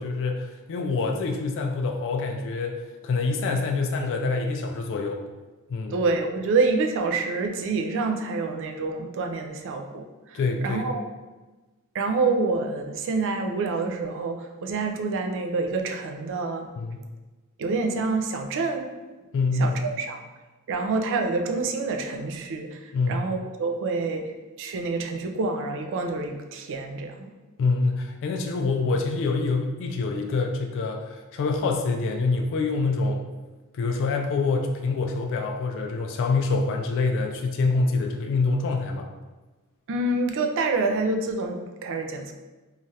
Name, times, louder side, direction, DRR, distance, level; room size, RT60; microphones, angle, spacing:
voice 1, 0.0-5.2 5.7-5.9 10.3-10.8 16.8-17.0 19.3-19.8 22.9-23.2 27.6-33.2 33.7-39.1, left 3 dB, 60° left, 2 dB, 0.3 m, -26 dB
voice 2, 5.9-11.0 11.9-16.7 17.6-18.9 19.5-20.2 20.7-24.3 24.6-27.3 39.9-42.3, right 3 dB, 60° right, 5 dB, 0.3 m, -27 dB
3.1 x 2.3 x 2.7 m, 1.2 s
head